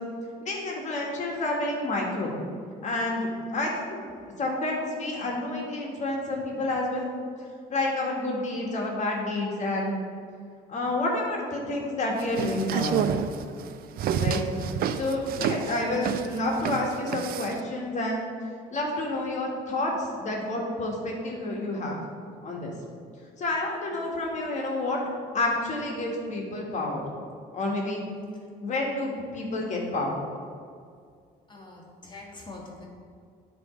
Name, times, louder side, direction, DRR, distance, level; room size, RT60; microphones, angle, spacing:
voice 1, 0.4-2.3 2.8-4.0 4.4-7.0 7.7-10.0 10.7-13.1 14.2-14.4 14.9-18.2 18.7-22.0 22.4-22.7 23.4-25.0 25.3-27.0 27.5-28.0 28.6-30.2, left 2 dB, 45° left, -1 dB, 1.7 m, -29 dB
sound 1, 12.2-17.6, right 8 dB, 60° right, 0.4 m, -29 dB
voice 2, 31.5-32.9, left 2 dB, 25° left, -2 dB, 1.7 m, -44 dB
9.6 x 3.5 x 5.1 m, 2.2 s
cardioid pair, 110°, 17 cm